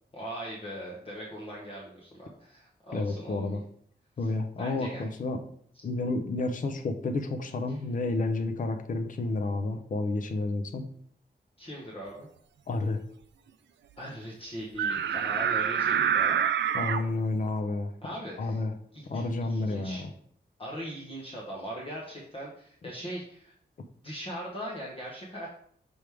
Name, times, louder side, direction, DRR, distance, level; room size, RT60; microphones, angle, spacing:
voice 1, 0.1-3.6 4.2-4.3 4.6-5.0 7.7-7.8 11.6-12.3 14.0-16.5 18.0-18.6 18.9-20.0 20.6-23.5 24.0-25.5, equal, 30° left, -4 dB, 1.1 m, -40 dB
voice 2, 2.9-3.6 4.2-5.4 5.8-10.9 12.7-13.0 16.7-17.9 18.4-18.7 19.1-20.1, left 2 dB, 45° left, 5 dB, 0.6 m, -30 dB
sound 1, 14.8-17.0, right 8 dB, 90° right, 0.4 m, -26 dB
6.2 x 3.5 x 4.7 m, 0.62 s
wide cardioid pair, 165°, 18 cm